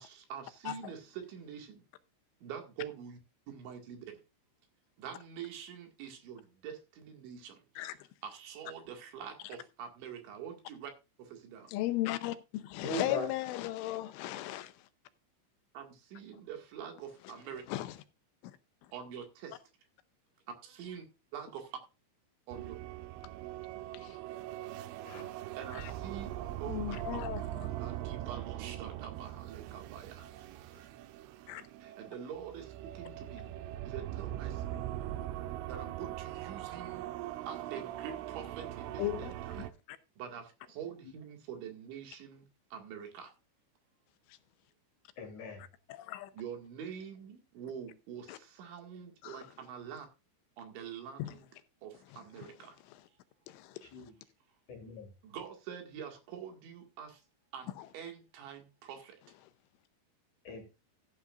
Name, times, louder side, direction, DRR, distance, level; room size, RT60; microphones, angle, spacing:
voice 1, 0.0-1.8 2.4-3.2 3.5-4.2 5.0-7.6 8.2-10.9 11.2-11.7 15.7-17.6 18.9-19.6 20.7-21.0 21.3-21.8 22.5-22.8 25.6-27.3 27.8-30.3 31.8-33.5 33.8-34.6 35.7-37.0 37.5-39.7 40.2-43.3 46.3-50.1 50.6-51.5 51.8-52.8 55.2-57.2 57.5-59.2, right 8 dB, 70° right, 4.2 m, -45 dB
voice 2, 11.7-14.7 17.2-17.3 17.7-18.0 23.9-24.2 25.7-25.9 26.7-27.7 31.5-31.7 39.0-40.0 45.6-46.3 48.3-48.4 49.2-49.4 51.2-51.4 52.4-52.5 53.5-54.1 57.8-57.9, left 15 dB, 85° left, 3.2 m, -37 dB
voice 3, 12.8-13.3 25.1-25.2 45.2-45.6 53.9-54.1 54.7-55.1 60.4-60.6, left 3 dB, 50° left, 2.6 m, -38 dB
sound 1, 22.5-39.7, right 13 dB, 90° right, 3.3 m, -41 dB
14.5 x 9.5 x 2.5 m
omnidirectional pair, 5.7 m